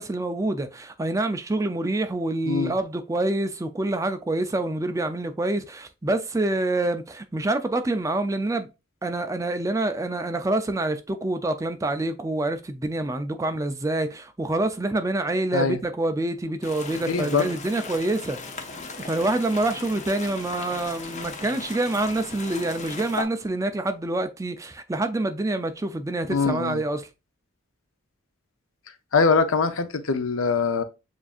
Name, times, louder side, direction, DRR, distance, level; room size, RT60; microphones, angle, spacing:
voice 1, 0.0-8.7 9.0-18.4 19.1-27.1, right 2 dB, 15° right, 0.4 m, -26 dB
sound 1, 16.6-23.2, left 3 dB, 35° left, 0.7 m, -37 dB
voice 2, 17.1-17.5 26.3-26.8 29.1-30.8, left 4 dB, 75° left, 0.6 m, -23 dB
7.1 x 2.6 x 2.4 m
head